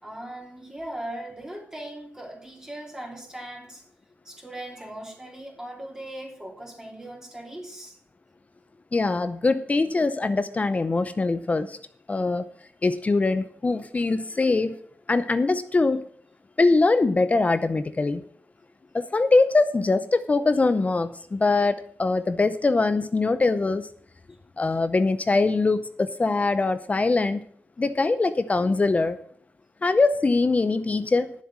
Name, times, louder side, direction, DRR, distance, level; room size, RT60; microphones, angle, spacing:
voice 1, 0.0-3.8 4.2-8.0, right 1 dB, 15° right, -1 dB, 3.2 m, -39 dB
voice 2, 8.9-11.8 12.1-12.4 12.8-14.8 15.1-16.1 16.6-18.2 18.9-23.9 24.6-27.4 27.8-29.2 29.8-31.4, left 3 dB, 30° left, 12 dB, 0.6 m, -22 dB
10.0 x 7.5 x 7.4 m, 0.62 s
cardioid pair, 85°, 4 cm